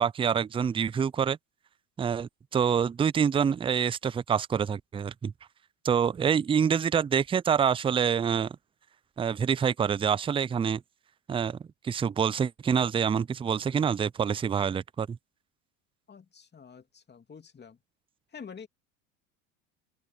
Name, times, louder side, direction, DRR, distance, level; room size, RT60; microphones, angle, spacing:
voice 1, 0.0-1.4 2.0-5.3 5.8-8.6 9.2-10.8 11.3-11.6 11.8-15.2, right 7 dB, 15° right, 0.4 m, -26 dB
voice 2, 6.3-6.7 16.1-17.8 18.3-18.7, left 6 dB, 25° left, 3.0 m, -48 dB
open air
hypercardioid pair, 80°, 40 cm